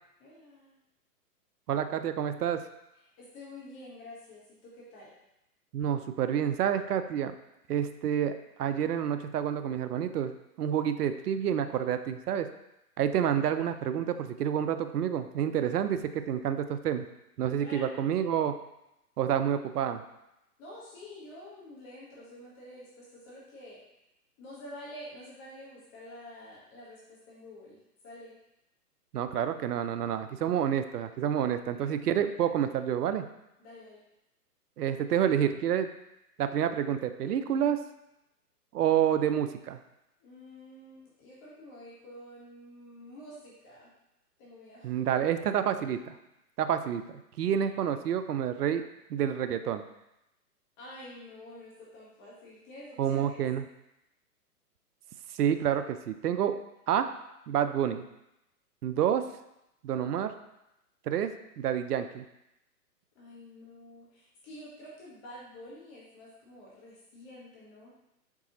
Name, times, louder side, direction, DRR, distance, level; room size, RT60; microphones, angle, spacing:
voice 1, 0.2-0.8 3.0-5.1 17.6-17.9 20.6-23.8 24.4-28.3 31.4-31.9 33.6-34.0 40.2-43.9 44.4-45.1 50.8-53.4 63.1-67.9, left 1 dB, 25° left, -6 dB, 1.2 m, -48 dB
voice 2, 1.7-2.7 5.7-7.3 7.7-10.3 10.6-12.5 13.0-17.0 17.4-18.6 19.2-20.0 29.1-33.3 34.8-35.9 36.4-37.8 38.7-39.8 44.8-46.2 46.6-49.8 53.0-53.6 55.3-56.6 56.9-57.1 57.5-58.1 58.8-59.2 59.8-60.3 61.1-62.2, right 9 dB, 75° right, 10 dB, 0.5 m, -28 dB
4.7 x 3.9 x 2.8 m, 0.88 s
hypercardioid pair, 130°, 47 cm